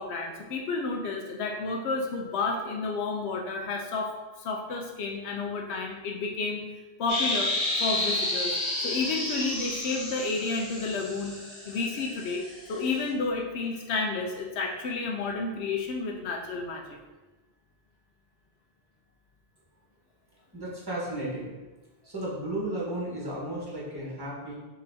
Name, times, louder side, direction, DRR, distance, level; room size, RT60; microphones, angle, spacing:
voice 1, 0.0-4.1 4.4-6.6 7.0-7.5 7.8-8.5 8.8-11.3 11.7-12.4 12.7-17.0, left 3 dB, 80° left, 1 dB, 0.8 m, -31 dB
sound 1, 7.1-12.9, left 2 dB, 40° left, 1.3 m, -31 dB
voice 2, 20.5-21.5 22.0-24.5, right 1 dB, 20° right, -6 dB, 1.2 m, -34 dB
5.3 x 3.0 x 2.7 m, 1.2 s
omnidirectional pair, 1.1 m